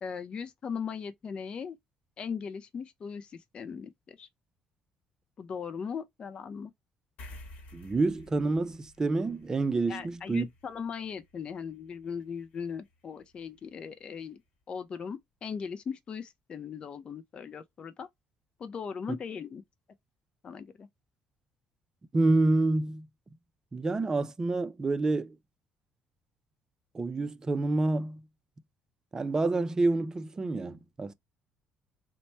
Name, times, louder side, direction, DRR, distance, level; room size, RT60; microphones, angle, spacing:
voice 1, 0.0-1.8 2.2-4.3 5.4-6.7 9.9-14.4 14.7-18.1 18.6-19.6 20.4-20.9, left 6 dB, 45° left, 0.4 m, -38 dB
sound 1, 7.2-14.0, left 1 dB, 65° left, 1.1 m, -53 dB
voice 2, 7.7-10.5 19.1-19.2 22.1-23.1 23.7-25.4 26.9-28.2 29.1-31.1, right 2 dB, 25° right, 0.4 m, -28 dB
3.0 x 2.2 x 4.1 m
cardioid pair, 90°, 3 cm